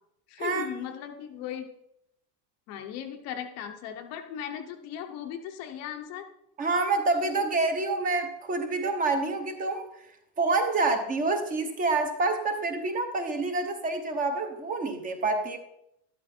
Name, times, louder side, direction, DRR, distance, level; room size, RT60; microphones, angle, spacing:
voice 1, 0.3-1.7 2.7-6.3, left 9 dB, 30° left, 6 dB, 0.8 m, -37 dB
voice 2, 6.6-9.9 10.4-15.6, right 3 dB, 15° right, 7 dB, 0.9 m, -27 dB
12.5 x 12.5 x 4.3 m, 0.79 s
supercardioid pair, 180°, 49 cm